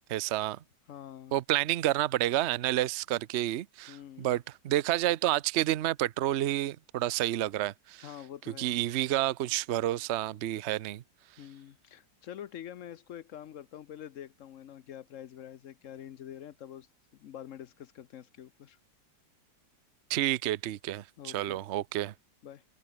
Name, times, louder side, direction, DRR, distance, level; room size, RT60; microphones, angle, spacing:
voice 1, 0.1-0.6 1.3-8.1 8.6-11.0 20.1-22.1, right 14 dB, 85° right, 0.6 m, -29 dB
voice 2, 0.9-1.4 3.9-4.3 8.0-8.7 11.4-16.9 17.1-18.8 21.2-21.6 22.4-22.6, left 10 dB, 60° left, 0.8 m, -46 dB
open air
omnidirectional pair, 2.0 m